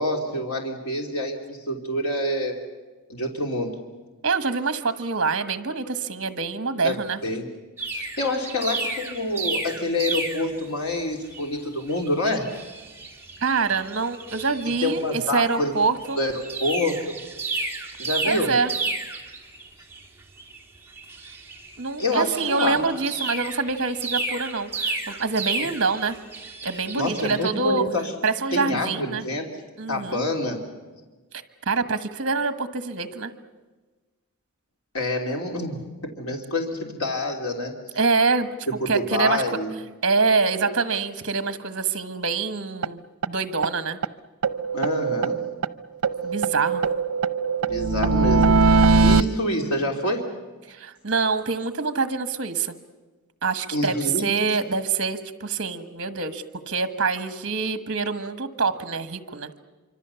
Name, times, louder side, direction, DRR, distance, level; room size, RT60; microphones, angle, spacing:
voice 1, 0.0-2.5 3.1-3.7 6.8-7.0 7.2-7.5 7.9-12.5 14.8-15.7 16.1-17.2 18.0-18.5 22.0-22.8 26.9-28.1 28.5-29.5 29.9-30.6 34.9-37.8 38.7-39.7 44.7-45.4 47.6-50.3 53.7-54.3, left 1 dB, 80° left, 2 dB, 3.1 m, -27 dB
voice 2, 4.2-7.2 13.4-16.2 18.2-18.7 21.8-26.2 26.6-27.8 28.2-29.2 29.8-30.2 31.7-33.3 37.9-38.5 38.9-39.4 40.0-43.0 43.3-44.0 46.2-46.8 50.7-52.7 53.4-53.9 54.2-59.5, right 4 dB, 55° right, 11 dB, 1.4 m, -25 dB
sound 1, 7.8-10.8 11.3-11.5 11.8-15.1 15.4-15.6 16.0-27.5, right 3 dB, 10° right, 2.3 m, -33 dB
sound 2, 42.8-42.9 43.2-43.3 43.6-43.7 44.0-44.1 44.4-45.7 46.0-49.2, right 4 dB, 80° right, 0.7 m, -21 dB
26.0 x 25.0 x 7.0 m, 1.3 s
head